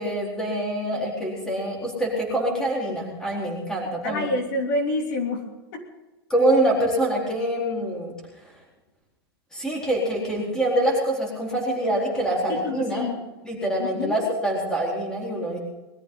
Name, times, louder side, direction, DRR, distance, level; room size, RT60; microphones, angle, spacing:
voice 1, 0.0-4.3 6.3-8.1 9.5-13.1 13.4-15.6, right 1 dB, 5° left, -2 dB, 4.1 m, -25 dB
voice 2, 4.0-5.4 5.7-5.8 12.5-13.2 13.8-14.3, left 2 dB, 50° left, 2 dB, 3.4 m, -27 dB
21.5 x 13.5 x 3.9 m, 1.0 s
supercardioid pair, 175°, 13 cm